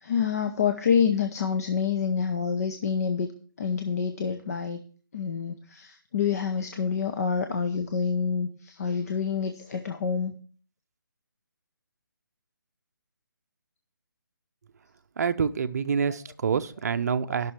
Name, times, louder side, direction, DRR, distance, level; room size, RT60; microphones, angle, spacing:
voice 1, 0.0-3.3 3.6-4.8 5.1-10.3 17.3-17.4, left 6 dB, 45° left, 0.7 m, -27 dB
voice 2, 15.2-17.5, right 6 dB, 45° right, 0.6 m, -27 dB
16.0 x 6.0 x 3.3 m
hypercardioid pair, 165°, 11 cm